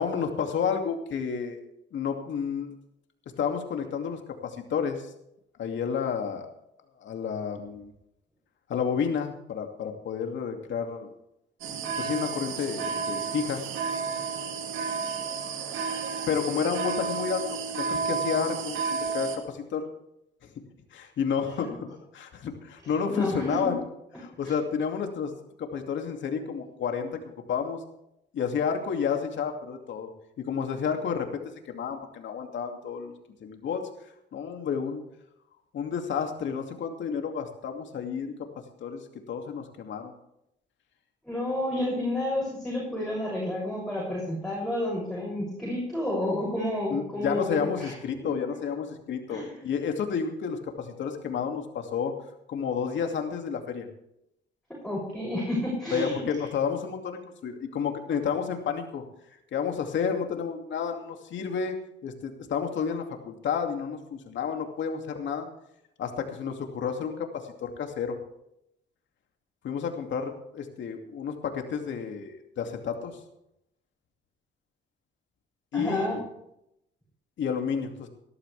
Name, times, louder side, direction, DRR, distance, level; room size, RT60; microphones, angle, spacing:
voice 1, 0.0-1.6 1.9-2.7 3.4-5.1 5.6-6.5 7.0-7.9 8.7-11.1 12.0-13.6 16.3-19.9 20.9-21.9 22.1-23.8 24.2-25.3 25.6-27.8 28.3-30.1 30.4-33.1 33.4-33.9 34.3-35.0 35.7-38.3 38.8-40.1 46.9-52.1 52.5-53.9 55.9-59.0 59.5-61.8 62.0-65.5 66.0-68.2 69.6-73.2 75.7-76.2 77.4-78.1, left 6 dB, 70° left, 4 dB, 2.5 m, -31 dB
sound 1, 11.6-19.4, right 5 dB, 85° right, 2.2 m, -31 dB
voice 2, 23.1-23.7 24.4-24.5 41.3-47.9 48.2-48.3 49.3-49.5 54.8-56.2 75.7-76.2, left 1 dB, 5° left, -5 dB, 7.0 m, -30 dB
18.5 x 12.5 x 3.4 m, 0.79 s
cardioid pair, 90°, 20 cm